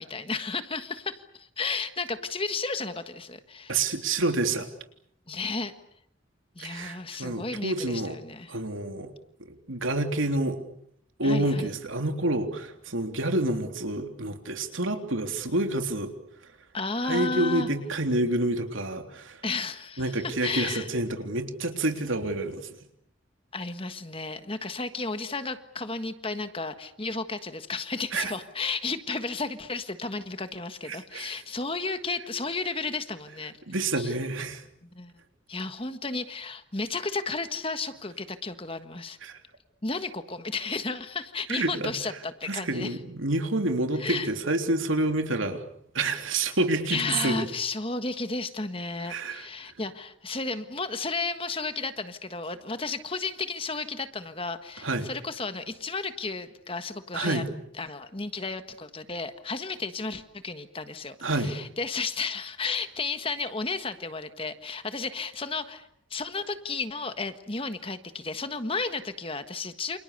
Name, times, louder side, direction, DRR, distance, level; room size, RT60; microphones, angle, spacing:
voice 1, 0.0-3.8 5.3-5.7 6.5-8.6 11.2-11.7 16.7-17.7 19.4-20.9 23.5-33.5 34.0-34.1 34.8-35.1 35.5-39.2 39.8-43.0 43.9-44.3 46.9-57.4 57.8-70.0, left 3 dB, 25° left, 9 dB, 1.5 m, -33 dB
voice 2, 3.7-4.7 6.6-8.2 8.5-9.1 9.7-10.6 11.2-16.1 17.0-19.4 20.0-22.7 28.1-28.3 30.9-31.3 33.7-34.6 39.2-39.4 41.5-41.9 42.5-45.6 45.9-47.4 49.1-49.5 54.8-55.1 57.1-57.5 61.2-61.5, right 2 dB, 80° right, 6 dB, 3.5 m, -28 dB
29.0 x 28.0 x 6.8 m, 0.70 s
head